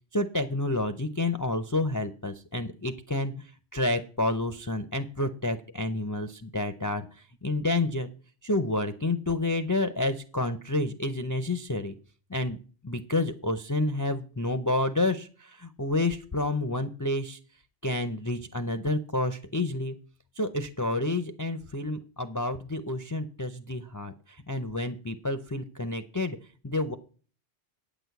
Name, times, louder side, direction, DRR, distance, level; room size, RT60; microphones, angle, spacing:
voice 1, 0.1-3.3 3.7-7.1 7.4-8.1 8.4-11.9 12.3-12.6 12.8-17.4 17.8-20.0 20.4-26.4 26.6-27.0, left 2 dB, 25° left, 8 dB, 0.5 m, -29 dB
9.0 x 6.1 x 8.1 m, 0.40 s
omnidirectional pair, 1.2 m